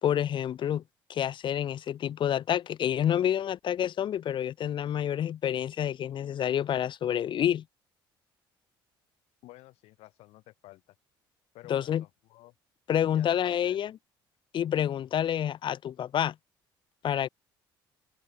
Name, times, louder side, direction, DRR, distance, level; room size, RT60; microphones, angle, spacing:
voice 1, 0.0-0.8 1.1-7.6 11.7-12.0 12.9-14.0 14.5-16.3 17.0-17.3, left 10 dB, 45° left, 0.7 m, -28 dB
voice 2, 9.4-10.9 11.5-12.5 13.1-13.3 13.6-13.8, left 18 dB, 60° left, 4.7 m, -52 dB
figure-of-eight pair, 55°, 12 cm